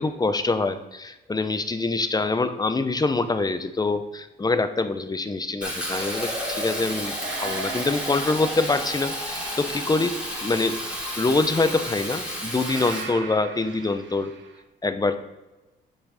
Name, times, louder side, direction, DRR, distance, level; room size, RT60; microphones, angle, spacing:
voice 1, 0.0-10.1 10.4-10.8 11.2-14.3 14.8-15.2, left 3 dB, 20° left, 10 dB, 0.8 m, -25 dB
sound 1, 3.0-3.3 7.2-9.3 12.6-14.6, right 6 dB, 70° right, 1.2 m, -40 dB
Fill (with liquid), 5.6-13.1, equal, 5° right, 3.0 m, -31 dB
8.4 x 6.0 x 4.2 m, 1.1 s
cardioid pair, 90°, 20 cm